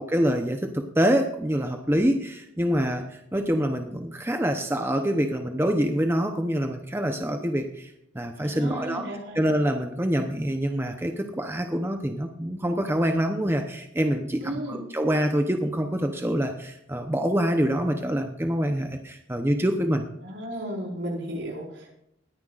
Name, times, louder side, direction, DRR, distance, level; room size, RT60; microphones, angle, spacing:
voice 1, 0.0-9.0 9.3-20.0, equal, 10° right, 5 dB, 0.8 m, -26 dB
voice 2, 8.4-9.4 14.4-14.8 20.2-22.0, right 1 dB, 70° right, -1 dB, 4.7 m, -34 dB
20.5 x 10.0 x 2.5 m, 0.77 s
head